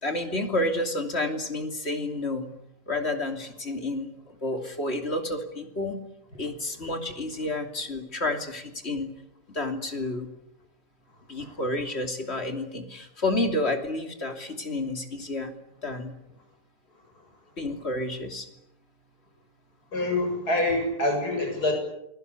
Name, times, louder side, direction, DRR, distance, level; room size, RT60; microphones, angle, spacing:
voice 1, 0.0-2.5 2.9-4.1 4.4-6.0 6.4-9.1 9.5-10.3 11.3-15.5 15.8-16.1 17.6-18.5, left 2 dB, 35° left, 5 dB, 3.2 m, -30 dB
voice 2, 19.9-21.7, left 2 dB, 60° left, 4 dB, 7.9 m, -26 dB
29.0 x 22.0 x 8.4 m, 0.83 s
omnidirectional pair, 1.8 m